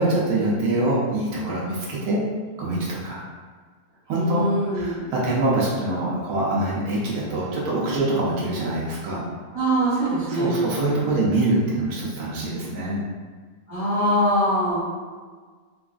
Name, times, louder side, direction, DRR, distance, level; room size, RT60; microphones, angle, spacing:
voice 1, 0.0-2.2 2.6-3.2 4.1-4.4 4.7-9.2 10.3-13.0, right 2 dB, 85° right, -6 dB, 1.1 m, -24 dB
voice 2, 4.1-5.0 9.5-10.7 13.7-14.8, right 1 dB, 25° right, -13 dB, 0.9 m, -23 dB
2.9 x 2.4 x 2.3 m, 1.5 s
omnidirectional pair, 1.5 m